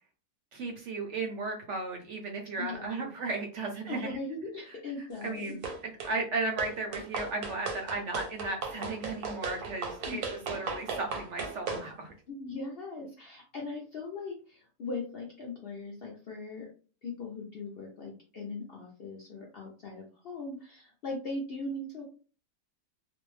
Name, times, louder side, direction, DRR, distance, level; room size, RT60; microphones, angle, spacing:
voice 1, 0.5-4.1 5.2-12.1, right 3 dB, 65° right, 2 dB, 0.7 m, -35 dB
voice 2, 2.6-3.1 3.9-5.6 10.1-10.2 12.3-16.7 17.0-22.0, left 3 dB, 60° left, -1 dB, 0.6 m, -39 dB
sound 1, 5.6-6.2 6.6-11.9, right 4 dB, 85° right, 1.2 m, -36 dB
2.5 x 2.1 x 3.1 m, 0.38 s
omnidirectional pair, 1.6 m